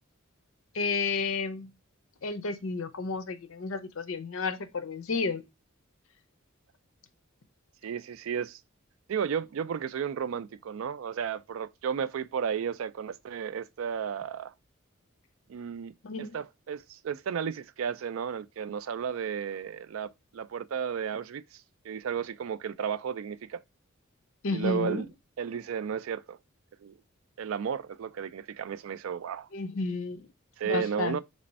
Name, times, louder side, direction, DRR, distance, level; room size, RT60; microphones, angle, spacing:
voice 1, 0.7-1.7 2.2-5.4 16.0-16.4 24.4-25.0 29.5-30.3 30.6-31.2, left 4 dB, 75° left, 0.6 m, -31 dB
voice 2, 7.8-8.6 9.1-14.5 15.5-23.6 24.5-25.1 25.4-26.4 26.8-26.9 27.4-29.5 30.6-31.2, right 7 dB, 75° right, 0.3 m, -33 dB
3.4 x 3.1 x 4.0 m
head